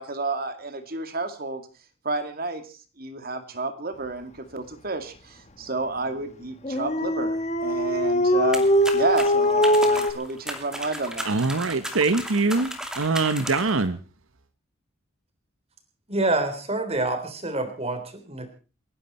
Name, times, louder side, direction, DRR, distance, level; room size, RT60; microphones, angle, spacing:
voice 1, 0.0-1.7 2.0-2.6 3.0-8.7 8.9-11.3, right 2 dB, 45° right, 9 dB, 2.3 m, -30 dB
Dog, 6.6-10.1, equal, 35° left, 1.4 m, -21 dB
sound 1, 8.5-13.8, equal, 5° right, 2.6 m, -35 dB
voice 2, 11.2-14.0, right 3 dB, 85° right, 12 dB, 1.1 m, -23 dB
voice 3, 16.1-18.5, right 2 dB, 30° right, 8 dB, 3.5 m, -27 dB
29.5 x 11.5 x 4.3 m, 0.37 s
head